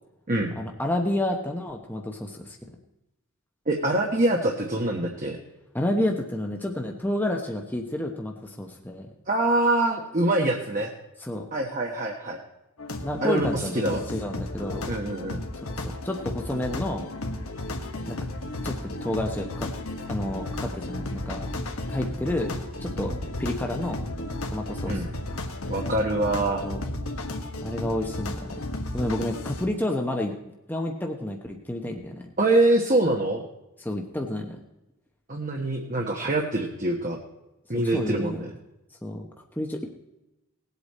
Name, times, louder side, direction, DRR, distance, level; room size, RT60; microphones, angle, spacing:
voice 1, 0.6-2.6 5.7-9.1 11.2-11.5 13.0-14.9 15.6-17.1 18.1-18.2 18.6-19.7 20.1-21.4 21.9-22.5 22.8-23.1 23.4-24.0 24.5-25.0 26.6-26.8 27.6-28.3 28.9-30.3 30.7-32.3 33.8-34.6 37.9-38.5 39.0-39.3 39.6-39.9, left 1 dB, 10° left, 1 dB, 0.9 m, -30 dB
voice 2, 3.7-5.4 9.3-10.9 11.5-12.4 13.2-14.0 14.9-15.4 24.9-25.1 25.7-26.6 32.4-33.4 35.3-37.2 37.7-38.5, right 2 dB, 35° right, 1 dB, 1.2 m, -24 dB
sound 1, 12.8-29.6, left 1 dB, 70° left, 1.5 m, -33 dB
19.0 x 8.2 x 4.2 m, 0.94 s
head